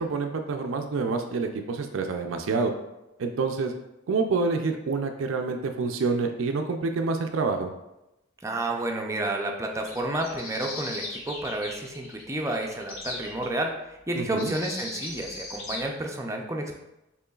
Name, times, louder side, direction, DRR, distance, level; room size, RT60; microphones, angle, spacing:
voice 1, 0.0-2.7 3.2-3.7 4.1-7.7 14.2-14.5, right 4 dB, 85° right, 5 dB, 0.4 m, -27 dB
voice 2, 8.4-16.8, right 1 dB, 15° right, 2 dB, 0.5 m, -30 dB
sound 1, 9.8-13.5 14.4-15.9, left 2 dB, 80° left, 1.1 m, -38 dB
6.7 x 3.1 x 2.3 m, 0.92 s
head